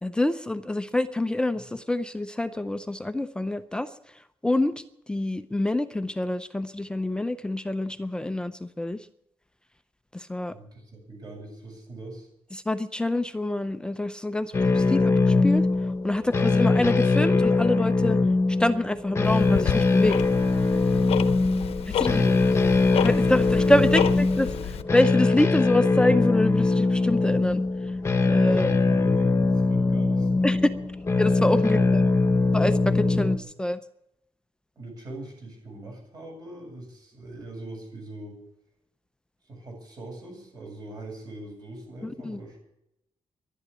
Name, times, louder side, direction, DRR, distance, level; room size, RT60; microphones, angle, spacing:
voice 1, 0.0-9.1 10.1-10.6 12.5-15.7 16.0-18.2 18.6-20.2 21.9-22.2 23.0-27.9 28.3-28.7 30.4-30.7 31.2-32.0 32.5-33.8 42.0-42.4, left 1 dB, 10° left, 10 dB, 0.5 m, -26 dB
voice 2, 10.5-12.3 21.6-22.7 23.8-23.9 28.5-30.8 31.7-31.9 34.8-38.4 39.4-42.6, right 2 dB, 40° right, 1 dB, 7.5 m, -41 dB
sound 1, 14.5-33.4, left 3 dB, 25° left, 1.1 m, -22 dB
Tick-tock, 19.2-24.8, left 8 dB, 70° left, 0.8 m, -31 dB
12.0 x 11.0 x 9.9 m, 0.81 s
wide cardioid pair, 155°, 10 cm